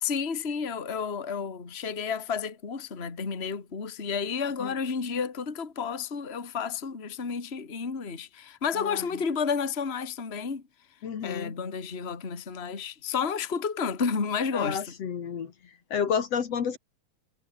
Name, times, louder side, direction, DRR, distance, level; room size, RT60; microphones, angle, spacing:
voice 1, 0.0-10.6 11.2-14.9, left 6 dB, 25° left, 2.2 m, -31 dB
voice 2, 11.0-11.5 14.5-15.5 15.9-16.8, left 7 dB, 60° left, 3.0 m, -30 dB
omnidirectional pair, 3.3 m